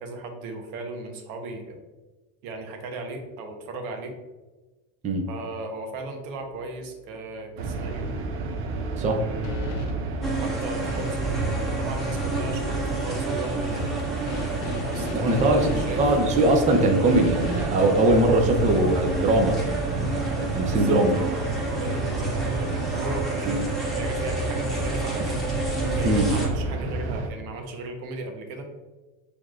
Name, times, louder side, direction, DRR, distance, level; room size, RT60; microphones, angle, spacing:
voice 1, 0.0-1.8 2.4-4.1 5.3-8.1 9.1-9.8 10.4-11.5 11.8-13.9 14.9-16.3 20.7-25.4 25.8-28.7, right 2 dB, 85° right, 4 dB, 1.0 m, -36 dB
sound 1, 6.4-6.8 7.1-7.2 9.4-10.0 14.3-17.7, left 2 dB, 80° left, 0.9 m, -33 dB
sound 2, 7.6-27.3, right 3 dB, 60° right, 0.8 m, -30 dB
sound 3, 10.2-26.5, right 2 dB, ahead, 1.0 m, -31 dB
voice 2, 15.1-21.1 23.4-23.6 26.0-26.3, right 2 dB, 20° right, 3 dB, 0.5 m, -22 dB
6.9 x 3.2 x 2.4 m, 1.2 s
supercardioid pair, 135°, 43 cm